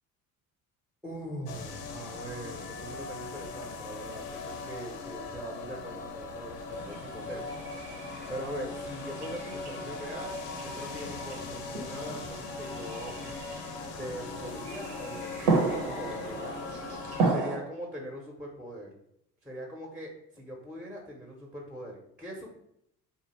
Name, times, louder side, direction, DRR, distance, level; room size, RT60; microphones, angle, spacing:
voice 1, 1.0-13.4 13.8-16.6 17.2-18.9 19.4-22.5, equal, ahead, 0 dB, 0.4 m, -42 dB
sound 1, 1.5-17.3, left 4 dB, 80° left, 0.5 m, -40 dB
sound 2, 6.7-17.6, right 4 dB, 90° right, 0.6 m, -34 dB
2.5 x 2.1 x 2.9 m, 0.75 s
hypercardioid pair, 60°, 45 cm